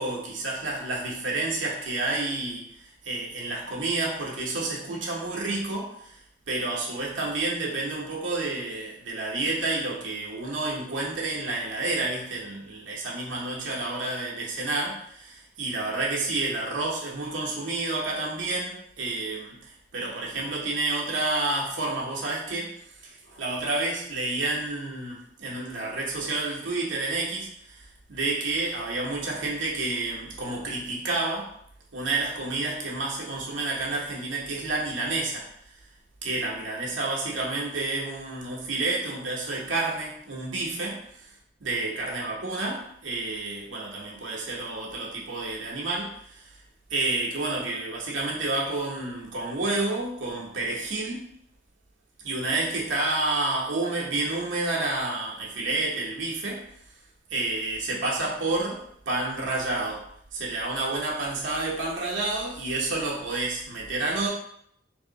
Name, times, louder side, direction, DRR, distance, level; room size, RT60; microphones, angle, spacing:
voice 1, 0.0-6.2 6.5-22.7 23.0-31.5 31.9-35.5 36.2-41.0 41.6-46.4 46.9-51.3 52.2-56.7 57.3-60.0 60.3-64.3, right 2 dB, 75° right, -3 dB, 0.9 m, -30 dB
3.5 x 2.7 x 3.9 m, 0.70 s
head